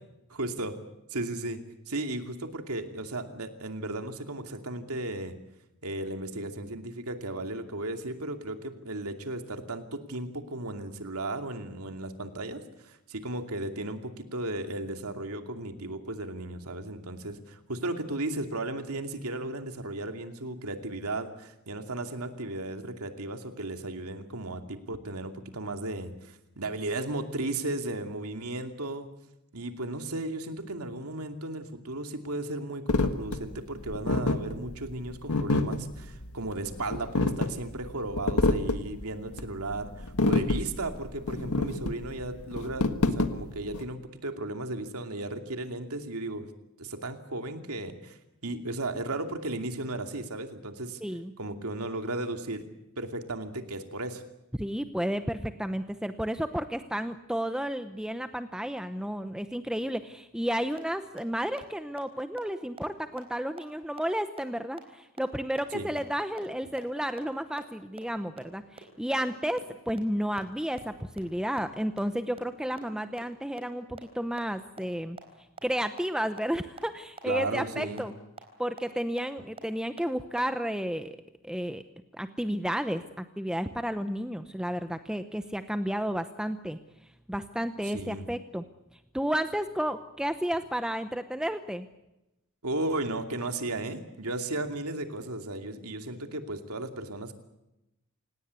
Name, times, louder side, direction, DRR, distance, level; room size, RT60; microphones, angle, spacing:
voice 1, 0.3-0.7 1.1-1.6 1.9-5.3 5.8-29.1 29.5-46.5 46.8-51.0 51.4-52.6 53.0-54.2 65.7-65.9 77.3-78.0 87.8-88.3 92.6-97.3, right 2 dB, 85° right, 6 dB, 2.7 m, -35 dB
sound 1, 32.9-43.8, left 2 dB, 85° left, 1.6 m, -28 dB
voice 2, 51.0-51.3 54.5-75.2 75.6-78.1 78.6-81.2 81.4-81.8 82.1-86.8 87.3-88.6 89.1-91.9, equal, 5° right, 9 dB, 0.8 m, -32 dB
sound 2, 60.8-60.9 61.2-61.3 61.6-61.7 62.0-62.1 62.4-62.5 62.8-62.9 63.2-63.3 63.6-63.7 64.0-64.1 64.4-64.5 64.8-64.9 65.2-65.3 65.6-65.7 66.0-66.1 66.4-66.5 66.8-66.9 67.2-67.3 67.6-67.7 68.0-68.1 68.4-68.5 68.8-68.9 69.2-69.3 69.6-69.7 70.0-70.1 70.4-70.5 70.7-70.8 71.1-71.2 71.6-71.7 72.0-72.1 72.4-72.5 72.8-72.9 73.2-73.3 73.6-73.7 74.0-74.1 74.4-74.5 74.8-74.9 75.2-75.3 75.6-75.7 76.0-76.1 76.4-76.5 76.8-76.9 77.2-77.3 77.6-77.7 78.0-78.1 78.4-78.5 78.8-78.9 79.2-79.3 79.6-79.7 80.0-80.1 80.4-80.5, right 3 dB, 25° right, 4.2 m, -43 dB
28.5 x 18.0 x 8.3 m, 0.92 s
head